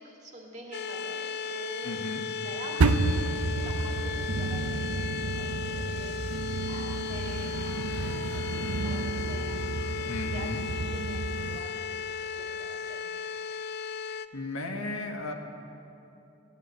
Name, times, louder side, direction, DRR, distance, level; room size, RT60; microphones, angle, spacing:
voice 1, 0.0-2.0 2.4-6.1 6.6-9.6 10.3-12.1 12.4-13.4, right 1 dB, 35° right, -1 dB, 2.2 m, -46 dB
sound 1, 0.7-14.3, left 6 dB, 50° left, 0.5 m, -35 dB
voice 2, 1.8-2.3 10.1-10.7 14.3-15.3, left 2 dB, 75° left, 3 dB, 1.5 m, -35 dB
sound 2, 2.8-11.6, right 3 dB, 80° right, 0.6 m, -31 dB
16.0 x 11.0 x 8.1 m, 2.8 s
head